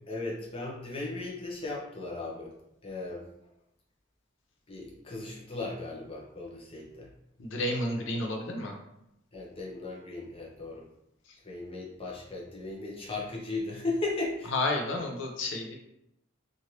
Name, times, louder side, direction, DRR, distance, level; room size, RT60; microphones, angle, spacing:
voice 1, 0.1-2.5 2.8-3.3 4.7-7.1 9.3-10.8 11.4-14.5, left 2 dB, 30° left, -3 dB, 0.7 m, -36 dB
voice 2, 7.4-8.8 11.3-11.4 14.5-15.7, left 2 dB, 65° left, 2 dB, 0.6 m, -31 dB
3.1 x 2.5 x 2.8 m, 0.82 s
head